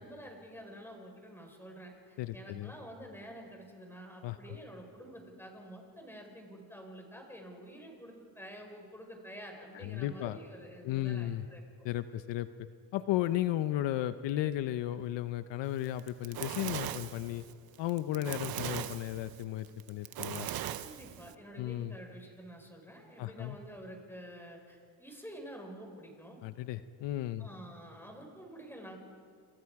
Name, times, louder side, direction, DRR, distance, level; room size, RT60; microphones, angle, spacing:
voice 1, 0.0-11.6 20.8-26.4 27.4-29.0, equal, 5° left, 2 dB, 5.0 m, -49 dB
voice 2, 2.2-2.7 4.2-4.4 9.7-10.4 10.8-11.5 11.8-12.5 12.9-17.4 17.8-20.5 21.6-22.0 23.2-23.6 26.4-27.5, left 13 dB, 80° left, 12 dB, 0.9 m, -34 dB
Fire, 15.9-21.3, right 11 dB, 55° right, 0.9 m, -39 dB
28.5 x 27.5 x 4.8 m, 2.3 s
cardioid pair, 125°, 43 cm